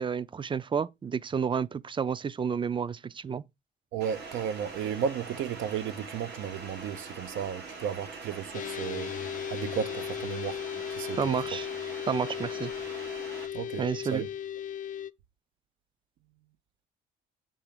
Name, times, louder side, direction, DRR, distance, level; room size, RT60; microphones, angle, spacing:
voice 1, 0.0-3.4 11.2-11.7 12.1-12.7 13.8-14.2, right 6 dB, 25° right, 0.4 m, -30 dB
voice 2, 3.9-9.1 9.5-10.6 10.9-11.2 13.5-13.8 14.1-14.3, right 8 dB, 80° right, 0.6 m, -34 dB
sound 1, 4.0-13.5, right 3 dB, 60° right, 4.2 m, -43 dB
sound 2, 8.5-15.1, left 9 dB, 40° left, 0.4 m, -36 dB
7.1 x 3.0 x 5.1 m
cardioid pair, 90°, 20 cm